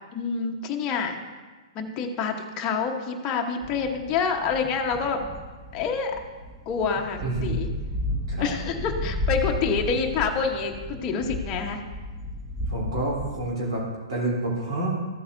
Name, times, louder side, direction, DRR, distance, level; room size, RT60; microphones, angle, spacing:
voice 1, 0.1-1.1 1.7-5.2 5.7-6.2 6.7-7.7 8.4-11.8, left 5 dB, 30° left, 2 dB, 1.0 m, -27 dB
sound 1, 3.6-13.5, left 1 dB, 5° right, 1.2 m, -33 dB
voice 2, 7.2-7.5 8.3-8.5 12.7-13.8 14.1-15.0, right 2 dB, 60° right, -5 dB, 3.3 m, -28 dB
14.0 x 8.5 x 2.6 m, 1.3 s
figure-of-eight pair, 115°, 3 cm